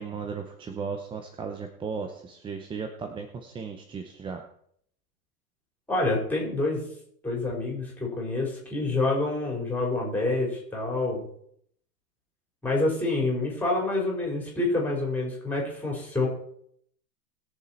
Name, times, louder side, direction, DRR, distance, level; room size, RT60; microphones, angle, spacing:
voice 1, 0.0-4.4, right 5 dB, 10° right, 6 dB, 0.6 m, -36 dB
voice 2, 5.9-6.8 7.2-11.3 12.6-16.3, left 2 dB, 5° left, -2 dB, 4.3 m, -27 dB
20.5 x 6.9 x 4.4 m, 0.67 s
hypercardioid pair, 140°, 44 cm